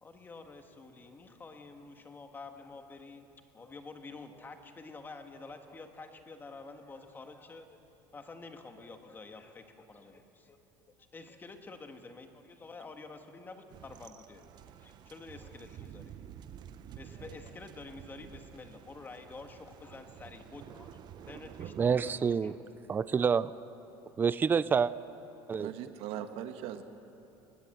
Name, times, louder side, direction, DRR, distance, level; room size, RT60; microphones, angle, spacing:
voice 1, 0.0-3.3 3.5-7.8 8.1-10.6 10.9-14.4 14.8-16.2 17.0-21.0 21.3-23.0, left 3 dB, 20° left, 6 dB, 1.5 m, -49 dB
sound 1, 13.7-22.1, right 9 dB, 45° right, 0.9 m, -49 dB
voice 2, 21.8-22.6 22.9-23.5 24.2-24.9 25.5-25.7, right 6 dB, 20° right, 17 dB, 0.4 m, -27 dB
voice 3, 25.6-26.8, right 10 dB, 65° right, 8 dB, 1.4 m, -40 dB
20.0 x 19.5 x 7.9 m, 2.9 s
cardioid pair, 145°, 10 cm